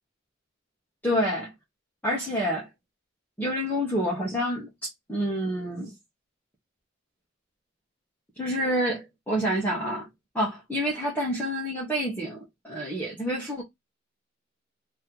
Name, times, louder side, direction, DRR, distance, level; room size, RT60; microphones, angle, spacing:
voice 1, 1.0-1.5 2.0-2.7 3.4-5.9 8.4-10.1 10.3-12.4 12.6-13.6, equal, 10° left, 1.1 m, -28 dB
3.1 x 2.9 x 3.8 m
head